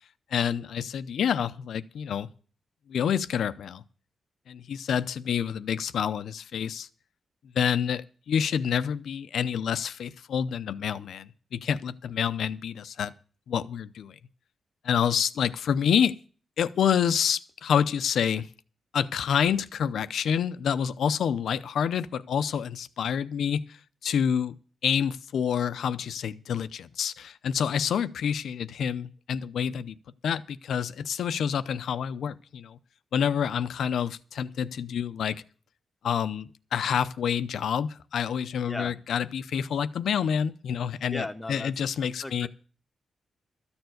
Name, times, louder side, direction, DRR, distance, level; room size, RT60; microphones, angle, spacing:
voice 1, 0.3-2.3 2.9-3.8 4.5-6.9 7.5-13.1 13.5-14.2 14.8-16.2 16.6-18.5 18.9-23.8 24.0-24.5 24.8-30.0 30.2-32.8 33.1-35.4 36.0-42.5, left 8 dB, 85° left, 0.6 m, -28 dB
voice 2, 41.1-41.7 42.2-42.5, left 2 dB, 15° left, 0.8 m, -35 dB
13.5 x 7.0 x 7.8 m
wide cardioid pair, 145°, 0 cm